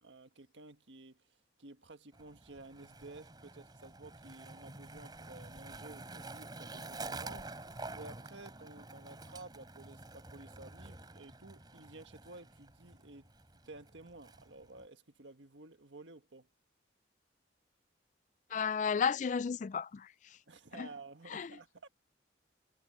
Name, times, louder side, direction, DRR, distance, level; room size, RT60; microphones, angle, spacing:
voice 1, 0.0-1.2 1.6-13.3 13.7-16.5 20.5-21.9, right 2 dB, 80° right, 1.6 m, -53 dB
Skateboard, 2.1-14.9, right 2 dB, 25° right, 3.7 m, -49 dB
voice 2, 18.5-20.1 20.8-20.9 21.3-21.5, left 6 dB, 40° left, 0.3 m, -33 dB
head